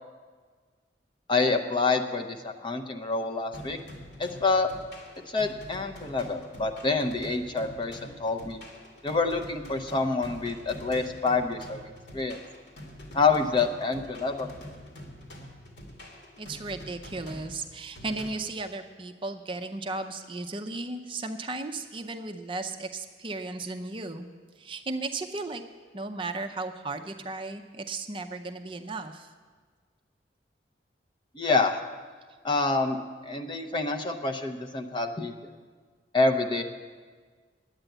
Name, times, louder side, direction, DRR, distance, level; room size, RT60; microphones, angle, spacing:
voice 1, 1.3-3.8 4.2-4.7 5.3-8.6 9.0-11.8 12.1-12.4 13.1-14.5 31.3-31.8 32.4-33.0 33.2-35.3 36.1-36.6, left 3 dB, 25° left, 5 dB, 0.7 m, -27 dB
sound 1, 3.5-18.3, equal, 80° left, 2.2 m, -45 dB
voice 2, 16.4-24.3 24.6-25.6 25.9-29.3, right 3 dB, 30° right, 6 dB, 0.5 m, -35 dB
10.5 x 8.9 x 7.9 m, 1.5 s
head